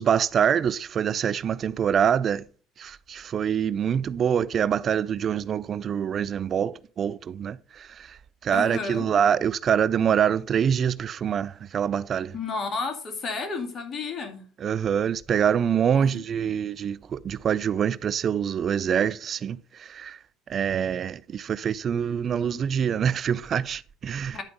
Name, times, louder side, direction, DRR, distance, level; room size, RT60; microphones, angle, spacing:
voice 1, 0.0-2.5 2.8-12.3 14.6-20.2 20.5-24.4, right 8 dB, 45° right, 0.3 m, -25 dB
voice 2, 8.5-9.1 12.3-14.4 15.9-16.2 24.3-24.4, left 4 dB, 45° left, 2.3 m, -32 dB
10.5 x 4.5 x 5.3 m
supercardioid pair, 80°, 0 cm